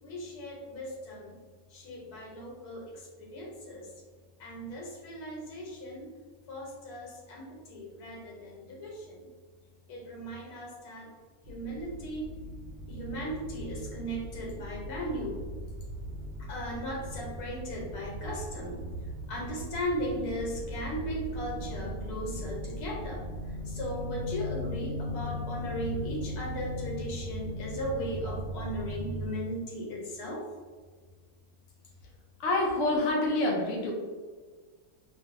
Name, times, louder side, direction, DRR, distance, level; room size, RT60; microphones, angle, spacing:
voice 1, 0.0-1.4 1.7-3.9 4.4-6.1 6.5-9.2 9.9-11.1 11.5-12.3 12.9-15.4 16.4-18.8 19.3-30.4, equal, 90° left, -2 dB, 1.3 m, -37 dB
sound 1, 11.5-29.3, equal, 80° right, 1.3 m, -38 dB
voice 2, 32.4-33.9, left 2 dB, 65° left, -1 dB, 0.8 m, -27 dB
2.5 x 2.5 x 2.5 m, 1.4 s
omnidirectional pair, 1.6 m